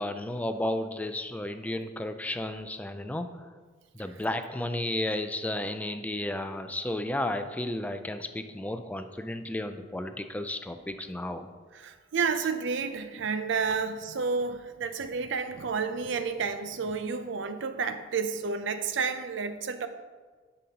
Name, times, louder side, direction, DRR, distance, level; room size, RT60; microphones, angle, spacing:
voice 1, 0.0-3.4 3.9-11.5, left 1 dB, 10° left, 8 dB, 0.4 m, -33 dB
voice 2, 11.7-19.9, right 5 dB, 70° right, 9 dB, 0.5 m, -30 dB
11.0 x 5.3 x 2.9 m, 1.4 s
head